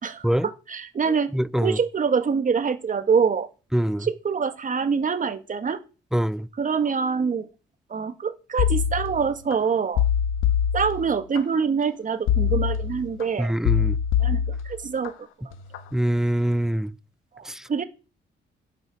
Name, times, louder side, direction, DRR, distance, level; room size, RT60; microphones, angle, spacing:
voice 1, 0.0-1.3 1.6-3.5 4.0-5.8 6.6-7.5 7.9-10.0 10.7-13.5 14.2-15.1 15.4-15.5 17.4-17.8, right 6 dB, 40° right, 2.1 m, -25 dB
voice 2, 1.3-1.8 3.7-4.1 6.1-6.5 13.4-14.0 15.9-16.9 17.5-17.6, right 1 dB, ahead, 0.6 m, -23 dB
sound 1, 8.6-9.6 10.0-11.4 12.3-13.2 13.6-15.1 15.5-15.9, left 9 dB, 90° left, 1.4 m, -24 dB
11.5 x 8.2 x 7.4 m
cardioid pair, 90°, 20 cm